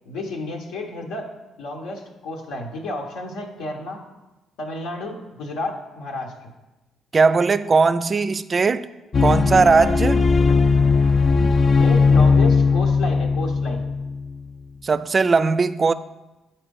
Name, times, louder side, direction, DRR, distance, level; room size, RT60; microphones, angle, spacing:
voice 1, 0.0-1.3 1.6-4.0 4.6-6.5 10.4-10.6 11.7-13.8, left 2 dB, 90° left, 1 dB, 1.0 m, -31 dB
voice 2, 7.1-8.9 9.2-10.2 14.8-15.9, right 4 dB, 35° right, 15 dB, 0.3 m, -18 dB
sound 1, 9.1-14.4, left 4 dB, 40° left, 0.3 m, -18 dB
8.9 x 4.2 x 5.2 m, 1.1 s
cardioid pair, 90°, 0 cm